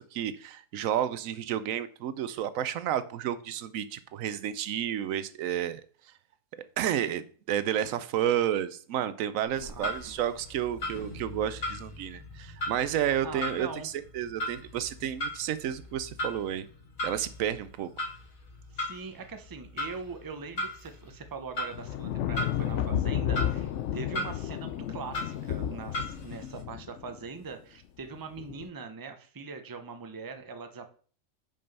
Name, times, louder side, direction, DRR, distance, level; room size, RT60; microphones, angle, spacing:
voice 1, 0.0-5.8 6.8-16.6 17.0-17.9, right 10 dB, 80° right, 1.0 m, -31 dB
Clock, 9.4-26.6, left 1 dB, 90° left, 2.3 m, -39 dB
voice 2, 9.6-10.1 13.2-13.9 18.7-30.9, right 4 dB, 20° right, 0.6 m, -42 dB
sound 1, 11.0-17.0, left 1 dB, 35° left, 2.3 m, -50 dB
sound 2, 21.7-27.2 28.4-28.7, left 10 dB, 65° left, 0.8 m, -32 dB
5.5 x 5.4 x 5.4 m
omnidirectional pair, 1.4 m